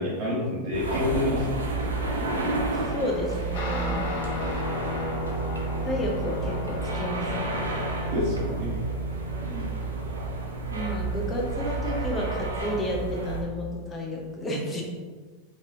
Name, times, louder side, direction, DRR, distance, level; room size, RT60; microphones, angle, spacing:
voice 1, 0.0-1.6 8.1-8.8 9.4-9.7, left 2 dB, 55° right, -7 dB, 1.1 m, -28 dB
sound 1, 0.7-13.4, right 3 dB, 85° right, 0.6 m, -31 dB
voice 2, 2.9-4.1 5.8-7.6 10.7-14.8, equal, 25° left, -2 dB, 1.0 m, -31 dB
Guitar, 3.5-13.3, left 1 dB, 60° left, 0.9 m, -34 dB
3.8 x 3.2 x 2.8 m, 1.5 s
hypercardioid pair, 90°, 0 cm